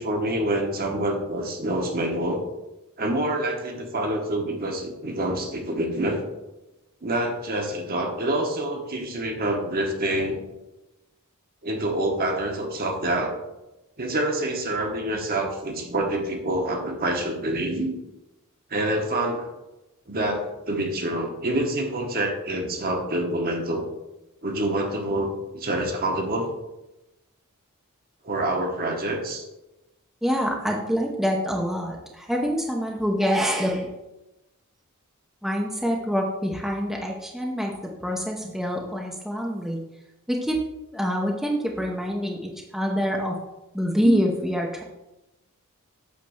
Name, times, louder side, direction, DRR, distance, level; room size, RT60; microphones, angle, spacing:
voice 1, 0.0-2.4 3.0-6.2 7.0-10.4 11.6-13.3 14.0-17.9 18.7-19.5 20.1-23.9 24.4-26.5 28.2-29.5 44.0-44.3, right 1 dB, 45° right, 3 dB, 1.2 m, -26 dB
voice 2, 30.2-33.9 35.4-39.8 40.3-40.6 40.9-43.4 43.7-44.8, equal, ahead, -1 dB, 0.7 m, -26 dB
8.4 x 3.3 x 6.4 m, 0.97 s
head